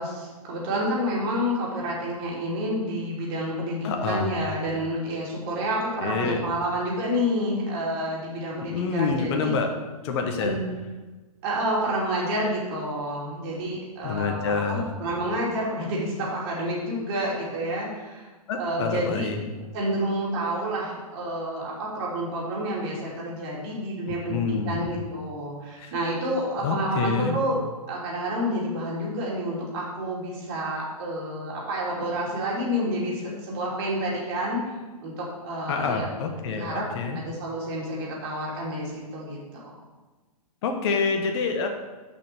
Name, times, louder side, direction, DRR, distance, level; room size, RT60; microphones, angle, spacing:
voice 1, 0.0-9.5 10.4-10.6 11.4-18.3 18.5-19.3 19.7-34.7 35.0-36.1 36.4-36.8 37.1-39.6, equal, 40° right, -4 dB, 2.9 m, -29 dB
voice 2, 3.8-4.3 6.0-6.5 8.7-9.7 10.0-10.5 14.0-14.8 18.5-19.4 24.1-24.8 25.8-25.9 26.6-27.4 35.7-37.2 40.6-41.7, left 5 dB, 45° left, 4 dB, 1.0 m, -27 dB
6.6 x 5.5 x 6.3 m, 1.2 s
figure-of-eight pair, 120°, 19 cm